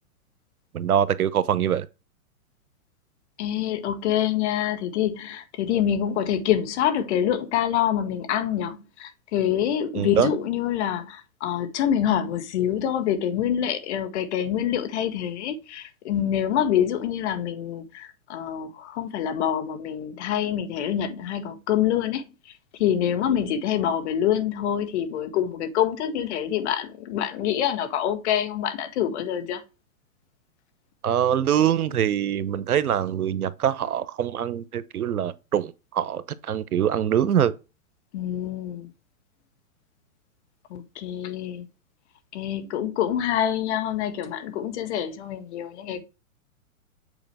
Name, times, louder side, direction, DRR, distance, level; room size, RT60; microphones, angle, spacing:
voice 1, 0.7-1.9 9.9-10.3 31.0-37.5, right 9 dB, 90° right, 0.9 m, -24 dB
voice 2, 3.4-22.2 22.8-29.6 38.1-38.9 40.7-41.7 42.3-46.0, left 10 dB, 50° left, 1.7 m, -26 dB
8.5 x 4.8 x 3.4 m
hypercardioid pair, 125°, 43 cm